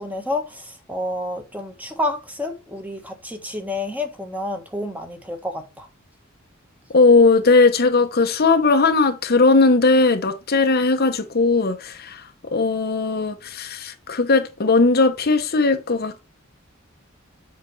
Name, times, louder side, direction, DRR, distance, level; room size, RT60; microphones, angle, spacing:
voice 1, 0.0-5.9, left 1 dB, 5° right, 1.3 m, -29 dB
voice 2, 6.9-16.2, left 3 dB, 45° left, 0.9 m, -18 dB
7.7 x 5.0 x 3.2 m
head